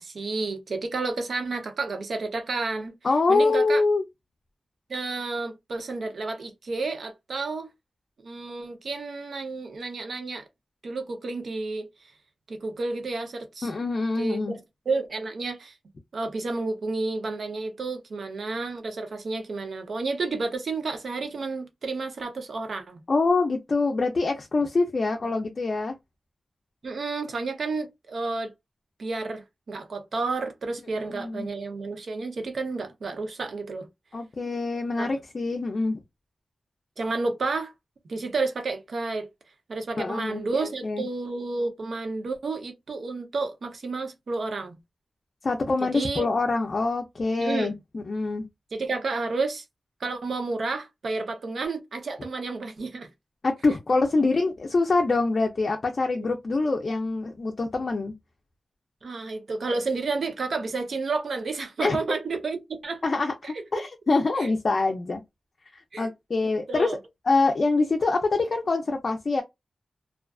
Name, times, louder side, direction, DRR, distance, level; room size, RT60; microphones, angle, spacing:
voice 1, 0.0-2.9 3.3-3.8 4.9-7.7 8.2-10.4 10.8-11.9 12.5-13.7 14.2-14.4 14.9-15.7 16.1-23.0 26.8-28.5 29.0-33.9 35.0-35.1 37.0-37.7 38.0-39.3 39.7-44.8 45.8-46.3 47.4-47.8 48.7-49.6 50.0-53.1 59.0-63.0 63.4-63.6 64.4-64.5 65.9-66.1 66.7-67.0, right 3 dB, 75° right, 0.6 m, -31 dB
voice 2, 3.0-4.0 13.6-14.5 23.1-25.9 31.0-31.5 34.1-36.0 40.0-41.0 45.4-48.4 53.4-58.1 61.8-62.0 63.0-65.2 65.7-67.0 67.3-69.4, left 3 dB, 50° left, 0.4 m, -25 dB
2.3 x 2.3 x 2.2 m
wide cardioid pair, 135°, 0 cm